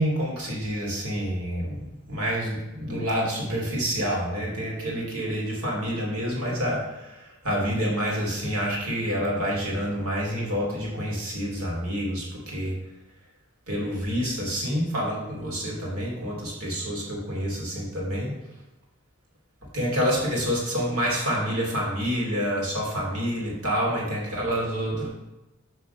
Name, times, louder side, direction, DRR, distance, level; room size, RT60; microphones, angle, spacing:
voice 1, 0.0-12.8 13.7-18.3 19.7-25.1, equal, 85° right, -2 dB, 3.1 m, -28 dB
8.6 x 4.6 x 6.8 m, 0.99 s
head